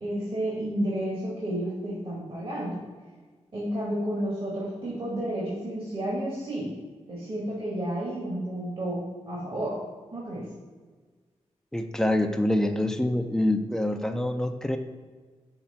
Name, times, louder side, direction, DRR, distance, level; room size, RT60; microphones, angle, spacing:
voice 1, 0.0-2.8 3.5-6.7 7.1-9.8 10.1-10.4, right 1 dB, 45° right, -6 dB, 1.9 m, -31 dB
voice 2, 11.7-14.8, left 1 dB, 5° left, 6 dB, 0.6 m, -26 dB
5.8 x 3.2 x 5.7 m, 1.4 s
cardioid pair, 60°, 12 cm